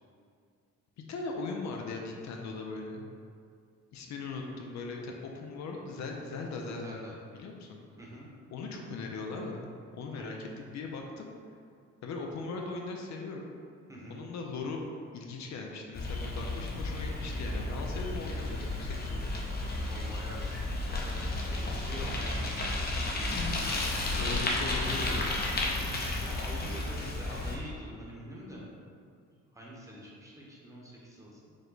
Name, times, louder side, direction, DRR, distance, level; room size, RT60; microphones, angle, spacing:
voice 1, 1.1-3.0 3.9-7.0 7.3-7.8 8.5-9.7 9.9-11.3 12.0-13.5 14.1-14.8 15.1-19.2 24.2-25.3, left 3 dB, 65° left, 1 dB, 0.5 m, -39 dB
voice 2, 6.8-7.1 8.0-8.3 10.1-10.4 13.9-14.2 19.8-20.7 21.0-21.2 21.5-22.7 23.0-24.3 26.1-28.6 29.5-31.5, equal, 10° right, -5 dB, 1.0 m, -46 dB
Bicycle, 15.9-27.6, left 2 dB, 30° left, 0.7 m, -32 dB
4.8 x 2.1 x 3.9 m, 2.2 s
cardioid pair, 90°, 30 cm